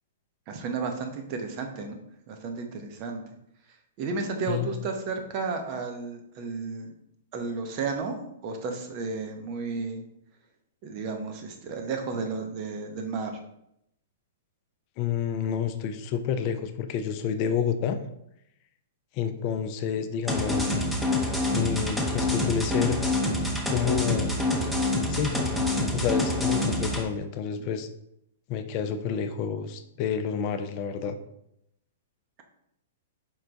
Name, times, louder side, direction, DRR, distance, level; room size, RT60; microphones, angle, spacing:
voice 1, 0.5-2.0 2.3-3.2 4.0-6.9 7.3-10.0 10.8-13.3, right 4 dB, 40° right, 5 dB, 0.7 m, -33 dB
voice 2, 15.0-18.0 19.1-20.8 21.5-23.0 23.7-24.4 25.1-25.5 25.9-27.9 28.5-31.2, left 7 dB, 45° left, 9 dB, 0.4 m, -29 dB
sound 1, 20.3-27.0, left 1 dB, ahead, 0.7 m, -26 dB
4.6 x 2.2 x 3.9 m, 0.78 s
hypercardioid pair, 125°, 0 cm